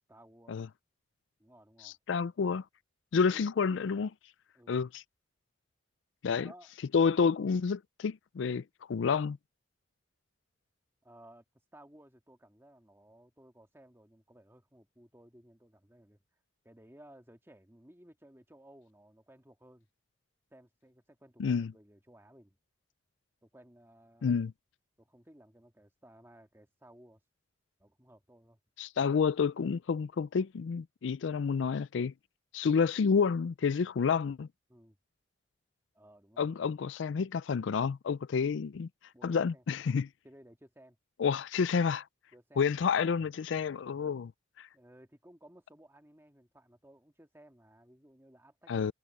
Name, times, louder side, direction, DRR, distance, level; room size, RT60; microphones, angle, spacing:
voice 1, 0.1-0.6 1.4-2.0 3.2-3.5 4.5-4.9 6.4-6.7 11.0-11.4 11.7-16.2 16.6-19.9 20.5-22.6 23.4-24.3 25.0-27.2 27.8-28.6 34.7-35.0 35.9-36.6 39.1-39.6 40.2-41.0 42.3-42.9 44.7-48.9, right 1 dB, 15° right, 2.0 m, -58 dB
voice 2, 1.8-2.6 3.1-4.1 4.7-5.0 6.2-6.5 6.9-9.4 21.4-21.7 24.2-24.5 28.8-32.1 32.5-34.5 36.4-38.9 39.2-40.1 41.2-42.1 42.6-44.3 44.6-44.7 48.7-48.9, left 6 dB, 75° left, 0.4 m, -29 dB
head